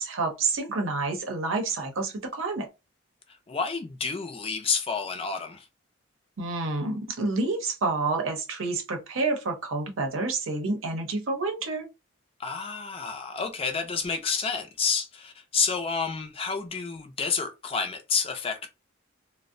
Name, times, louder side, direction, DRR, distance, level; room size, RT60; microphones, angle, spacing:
voice 1, 0.0-2.7 6.4-11.9, right 3 dB, 75° right, 0.7 m, -29 dB
voice 2, 3.5-5.7 12.4-18.7, left 5 dB, 30° left, 0.4 m, -29 dB
2.5 x 2.0 x 2.5 m
head